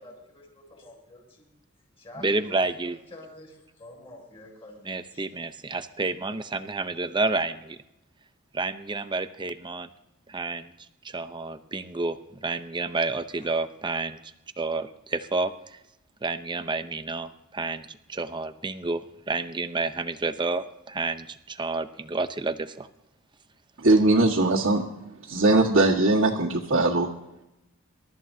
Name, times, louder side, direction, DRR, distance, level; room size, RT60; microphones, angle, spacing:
voice 1, 0.0-1.5 2.0-5.2 13.3-13.5, left 1 dB, 25° left, -2 dB, 6.7 m, -48 dB
voice 2, 2.2-3.0 4.9-7.8 8.5-9.9 10.3-10.7 11.0-15.5 16.2-22.9, right 3 dB, 20° right, 10 dB, 0.7 m, -30 dB
voice 3, 23.8-24.8 25.2-27.1, right 2 dB, 70° right, -5 dB, 1.7 m, -20 dB
27.0 x 13.0 x 2.8 m, 0.90 s
head